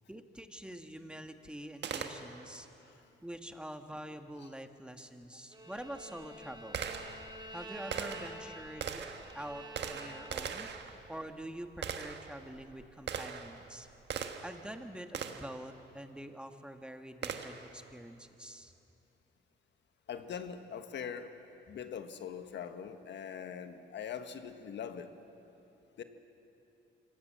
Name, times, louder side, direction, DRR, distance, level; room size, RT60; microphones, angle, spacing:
voice 1, 0.1-2.7 3.2-6.8 7.5-9.1 9.3-13.9 14.4-18.7, right 1 dB, 5° right, 7 dB, 1.4 m, -46 dB
Gunshot gunfire, 1.8-2.6 5.0-5.1 5.8-14.7 15.1-15.6 17.2-17.8, right 7 dB, 60° right, 1.5 m, -41 dB
Bowed string instrument, 5.5-10.7, right 1 dB, 20° right, 3.5 m, -49 dB
voice 2, 20.1-21.4 21.7-25.1 26.0-26.1, left 7 dB, 65° left, 8 dB, 1.5 m, -42 dB
26.0 x 17.5 x 7.6 m, 2.9 s
cardioid pair, 90°, 20 cm